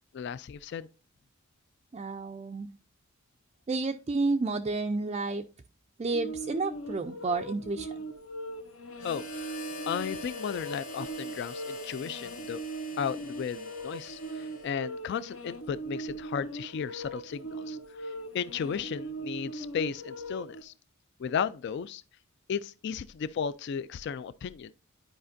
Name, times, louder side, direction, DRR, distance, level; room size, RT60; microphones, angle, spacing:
voice 1, 0.1-0.9 9.0-9.5 9.9-12.6 13.0-20.7 21.2-22.0 22.5-24.7, left 7 dB, 50° left, 0.3 m, -35 dB
voice 2, 1.9-2.7 3.7-5.4 6.0-7.9, right 3 dB, 30° right, 0.3 m, -30 dB
sound 1, 6.1-20.6, right 1 dB, 75° left, 1.0 m, -40 dB
Harmonica, 9.0-15.0, left 2 dB, 90° left, 1.9 m, -44 dB
11.0 x 5.0 x 2.6 m
head